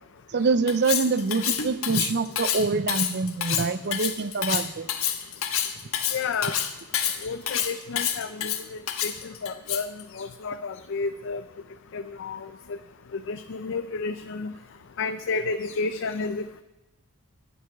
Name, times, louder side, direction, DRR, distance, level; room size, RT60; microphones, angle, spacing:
voice 1, 0.3-4.9, right 4 dB, 50° right, 14 dB, 0.5 m, -25 dB
Cutlery silverware, 0.7-10.0, left 10 dB, 75° left, 1.3 m, -28 dB
voice 2, 6.1-6.6 7.2-11.4 11.9-12.8 13.1-14.5 15.0-16.6, left 4 dB, 60° left, 10 dB, 0.5 m, -31 dB
22.5 x 9.6 x 3.5 m, 1.0 s
head